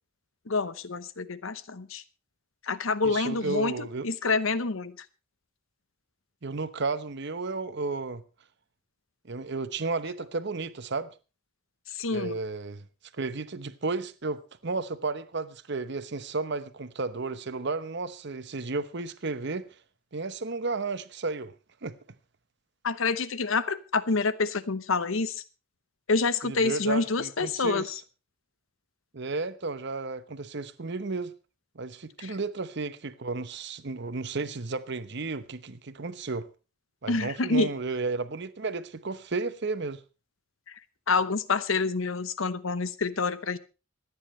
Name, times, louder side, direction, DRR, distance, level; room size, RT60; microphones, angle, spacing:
voice 1, 0.5-2.0 2.6-5.1 11.9-12.4 22.8-25.4 26.1-27.9 32.2-32.3 37.1-37.7 40.7-40.8 41.1-43.6, left 4 dB, 80° left, 0.9 m, -27 dB
voice 2, 3.0-4.1 6.4-8.2 9.2-11.1 12.1-12.8 13.2-19.7 20.1-21.5 21.8-21.9 26.4-27.9 29.1-31.3 31.7-36.5 37.0-40.0, right 3 dB, 55° right, 1.0 m, -33 dB
25.5 x 9.7 x 3.2 m
head